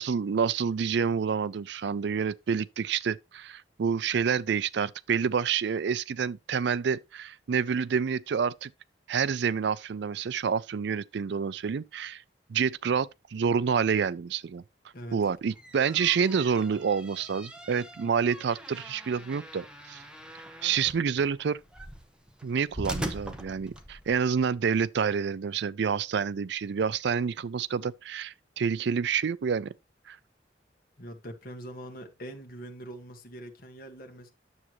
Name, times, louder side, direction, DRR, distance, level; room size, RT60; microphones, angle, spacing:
voice 1, 0.0-8.7 9.1-12.2 12.5-14.6 15.1-20.0 20.6-21.6 22.4-29.7 30.1-30.2, right 6 dB, 65° right, 0.4 m, -28 dB
voice 2, 14.9-15.3 31.0-34.3, right 1 dB, 55° left, 1.7 m, -43 dB
sound 1, 15.4-24.3, equal, 5° right, 1.1 m, -42 dB
9.7 x 7.1 x 3.0 m
head